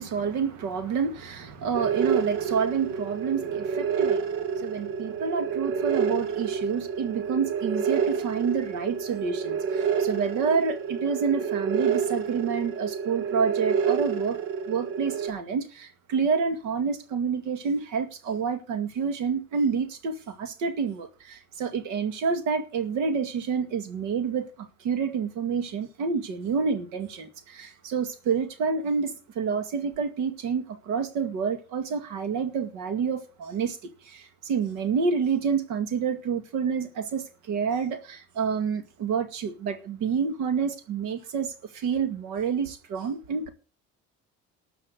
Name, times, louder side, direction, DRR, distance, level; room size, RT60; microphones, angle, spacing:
voice 1, 0.0-4.3 4.6-14.4 14.7-33.8 34.0-43.5, right 6 dB, 70° right, 2.1 m, -28 dB
sound 1, 1.7-15.3, right 6 dB, 85° right, 2.2 m, -28 dB
13.0 x 6.4 x 8.1 m
cardioid pair, 140°, 29 cm